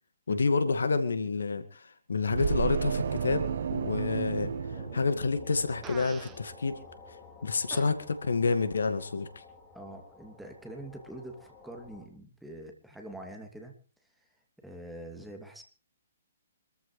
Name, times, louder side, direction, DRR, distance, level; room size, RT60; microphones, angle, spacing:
voice 1, 0.3-3.5 3.7-4.5 4.9-6.8 7.4-9.3, left 4 dB, 70° left, 10 dB, 1.9 m, -28 dB
sound 1, 2.3-5.8, right 7 dB, 55° right, 1.5 m, -32 dB
sound 2, 4.7-12.1, left 4 dB, 20° left, 3.5 m, -51 dB
Fart, 5.8-6.4 7.7-7.9, right 9 dB, 20° right, 1.0 m, -44 dB
voice 2, 9.7-13.7 14.6-15.6, right 1 dB, ahead, 2 dB, 2.7 m, -45 dB
26.0 x 14.0 x 3.3 m, 0.37 s
figure-of-eight pair, 125°, 0 cm